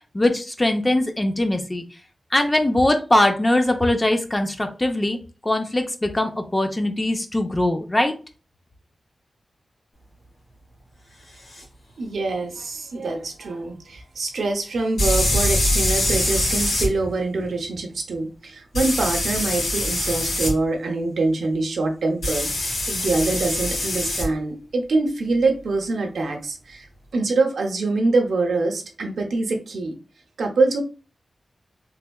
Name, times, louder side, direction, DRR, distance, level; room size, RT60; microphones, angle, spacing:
voice 1, 0.1-1.8 2.3-5.2 5.4-8.1, left 1 dB, 20° left, 5 dB, 0.6 m, -21 dB
sound 1, 11.5-11.6 15.0-16.9 18.7-20.5 22.2-24.3, left 1 dB, 90° left, 1.8 m, -23 dB
voice 2, 12.0-26.9 27.1-30.0 30.4-30.8, right 3 dB, 85° right, 3 dB, 0.7 m, -24 dB
3.3 x 3.2 x 2.2 m, 0.34 s
wide cardioid pair, 90°, 0 cm